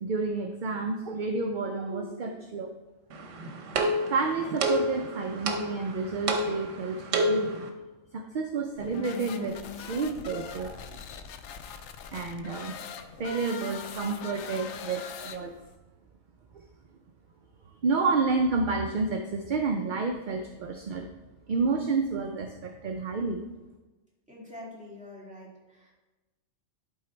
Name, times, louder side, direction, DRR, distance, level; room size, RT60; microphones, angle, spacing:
voice 1, 0.0-2.7 4.0-7.5 8.1-11.1 12.1-12.8 13.2-15.6 17.8-21.1 21.5-23.4, right 4 dB, 50° right, 4 dB, 0.6 m, -30 dB
sound 1, 3.1-7.7, right 1 dB, 85° right, 1.2 m, -30 dB
sound 2, 8.8-15.8, left 7 dB, 75° left, 0.9 m, -42 dB
voice 2, 24.3-25.9, left 1 dB, 5° right, -5 dB, 2.2 m, -45 dB
11.5 x 3.9 x 4.4 m, 1.1 s
omnidirectional pair, 1.3 m